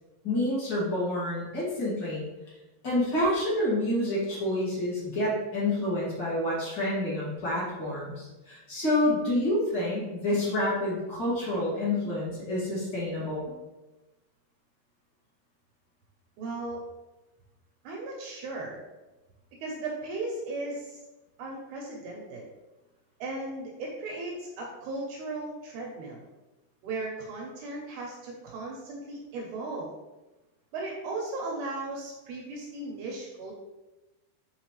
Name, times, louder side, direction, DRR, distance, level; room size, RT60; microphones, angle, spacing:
voice 1, 0.2-2.2 2.8-13.4, left 1 dB, 50° left, -8 dB, 1.2 m, -28 dB
voice 2, 16.4-16.8 17.8-18.8 19.6-21.0 21.4-22.5 23.2-26.3 26.8-29.9 30.7-33.6, right 2 dB, 75° right, -1 dB, 2.4 m, -36 dB
8.5 x 4.0 x 3.2 m, 1.1 s
omnidirectional pair, 5.4 m